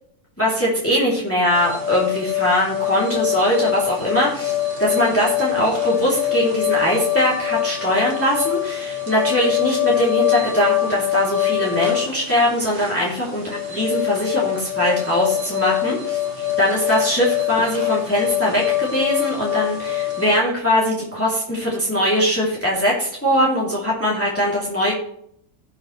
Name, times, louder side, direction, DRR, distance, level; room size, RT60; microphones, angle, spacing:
voice 1, 0.4-24.9, equal, 10° left, -6 dB, 3.0 m, -21 dB
sound 1, 1.5-20.4, left 12 dB, 40° right, 1.8 m, -24 dB
18.0 x 6.4 x 3.3 m, 0.69 s
omnidirectional pair, 1.6 m